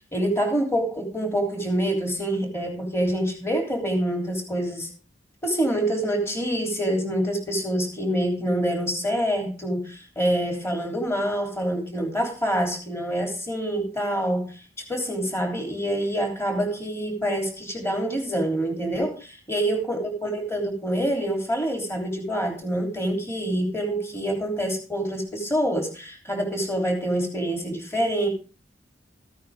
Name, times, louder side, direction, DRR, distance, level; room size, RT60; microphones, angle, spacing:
voice 1, 0.1-4.9 5.4-28.3, right 1 dB, 15° left, 2 dB, 3.4 m, -26 dB
15.0 x 9.3 x 3.6 m, 0.35 s
head